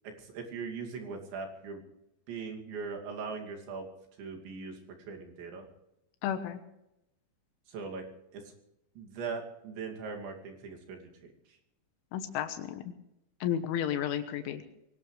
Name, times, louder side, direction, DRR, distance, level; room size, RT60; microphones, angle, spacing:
voice 1, 0.2-1.8 2.3-3.9 4.2-4.8 5.1-5.7 7.7-8.0 8.3-8.4 9.0-11.3, right 5 dB, 70° right, 2 dB, 4.8 m, -40 dB
voice 2, 6.2-6.6 12.1-12.8 13.4-14.6, left 10 dB, 90° left, 7 dB, 3.7 m, -32 dB
23.0 x 18.5 x 3.3 m, 0.84 s
omnidirectional pair, 5.4 m